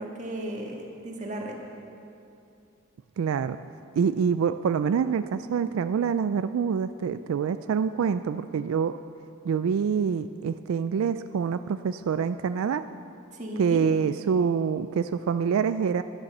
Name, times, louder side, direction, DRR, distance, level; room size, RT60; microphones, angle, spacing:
voice 1, 0.0-1.6 13.3-13.8, right 1 dB, 35° right, 0 dB, 1.8 m, -35 dB
voice 2, 3.2-3.6 4.0-9.0 9.4-12.9 13.6-16.0, right 6 dB, 90° right, 11 dB, 0.3 m, -26 dB
12.0 x 11.5 x 6.6 m, 2.8 s
head